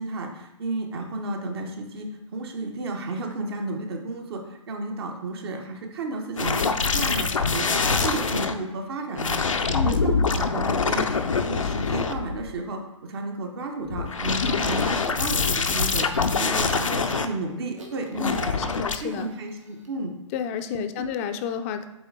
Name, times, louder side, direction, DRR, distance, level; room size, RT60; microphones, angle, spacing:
voice 1, 0.0-20.1 20.7-20.9, right 2 dB, 50° right, 3 dB, 1.0 m, -33 dB
sound 1, 6.4-8.5 9.2-12.6 13.9-17.3 18.2-19.0, left 4 dB, 80° left, 0.6 m, -24 dB
voice 2, 9.7-10.1 16.5-17.0 18.2-19.3 20.3-21.9, left 8 dB, 25° left, 8 dB, 0.5 m, -31 dB
sound 2, 14.6-15.3 15.9-16.2 16.6-17.3 17.8-19.5 19.8-19.9, right 2 dB, 75° right, 1.5 m, -40 dB
8.3 x 3.2 x 3.7 m, 1.0 s
figure-of-eight pair, 125°, 16 cm